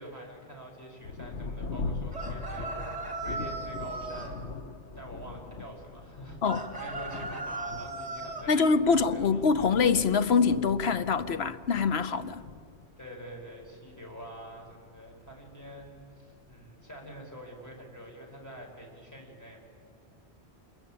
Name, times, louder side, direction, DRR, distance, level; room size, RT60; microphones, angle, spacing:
voice 1, 0.0-4.6 4.9-9.7 13.0-19.6, equal, 15° left, 5.4 m, -46 dB
Thunder, 1.0-17.1 17.8-17.9 18.5-18.9, left 3 dB, 85° left, 1.3 m, -42 dB
sound 1, 2.1-4.3 6.4-8.5, right 3 dB, 35° right, 3.2 m, -37 dB
voice 2, 8.5-12.4, left 5 dB, 70° left, 1.1 m, -24 dB
26.5 x 22.0 x 8.9 m
omnidirectional pair, 1.1 m